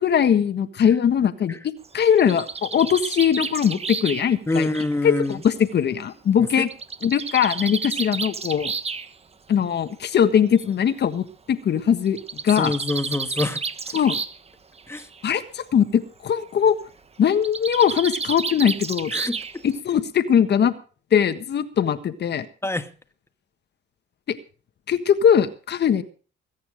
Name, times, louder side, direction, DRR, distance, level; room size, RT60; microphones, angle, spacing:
voice 1, 0.0-1.6 1.9-4.7 5.0-6.7 7.0-8.7 9.5-12.2 12.4-12.7 13.9-14.2 15.2-16.8 17.2-19.1 19.6-20.7 21.1-22.4 24.3-24.4 24.9-26.0, left 8 dB, 60° left, 1.5 m, -20 dB
Bird, 1.8-5.6 6.7-9.1 10.1-10.2 10.6-10.7 10.9-11.0 12.1-14.5 14.8-15.2 17.3-19.8, right 4 dB, 30° right, 1.4 m, -31 dB
voice 2, 4.5-5.4 6.4-6.7 12.5-13.6 14.9-15.1 19.1-19.6 22.6-22.9, left 2 dB, 15° left, 1.7 m, -26 dB
21.0 x 9.6 x 5.0 m
cardioid pair, 90°, 20 cm